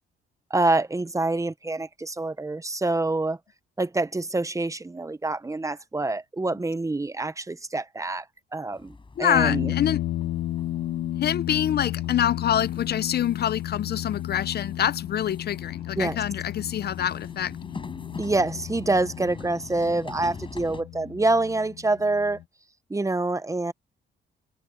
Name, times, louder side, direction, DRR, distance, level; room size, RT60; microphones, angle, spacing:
voice 1, 0.5-3.4 3.8-8.3 8.5-9.7 16.0-16.2 18.2-22.4 22.9-23.7, right 2 dB, 15° right, 0.9 m, -26 dB
sound 1, 8.7-20.8, left 3 dB, 25° left, 7.8 m, -44 dB
voice 2, 9.2-10.0 11.2-17.5, left 10 dB, 55° left, 0.6 m, -26 dB
sound 2, 9.3-22.4, left 13 dB, 85° left, 1.9 m, -33 dB
cardioid pair, 90°, 20 cm